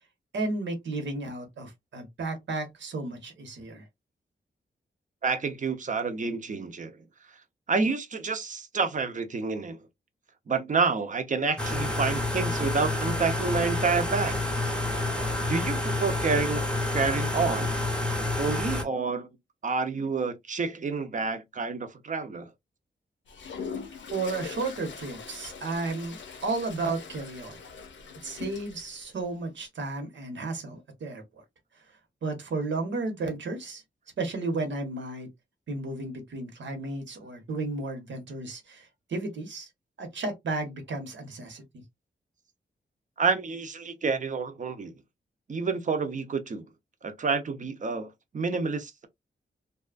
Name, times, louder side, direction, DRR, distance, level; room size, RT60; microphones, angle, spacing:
voice 1, 0.3-3.9 24.1-27.6 28.2-31.2 32.2-33.8 34.2-35.3 35.7-39.7 40.0-41.6, right 3 dB, 85° right, 1.0 m, -33 dB
voice 2, 5.2-6.9 7.7-9.8 10.5-14.4 15.5-16.6 16.9-17.8 18.4-19.3 19.6-22.5 43.2-44.9 45.5-46.6 47.0-48.1 48.3-49.1, right 4 dB, 45° right, 0.6 m, -28 dB
sound 1, 11.6-18.8, left 2 dB, 5° left, 0.7 m, -28 dB
Toilet flush, 23.3-29.1, left 6 dB, 90° left, 0.6 m, -42 dB
2.7 x 2.3 x 2.4 m
wide cardioid pair, 135°, 19 cm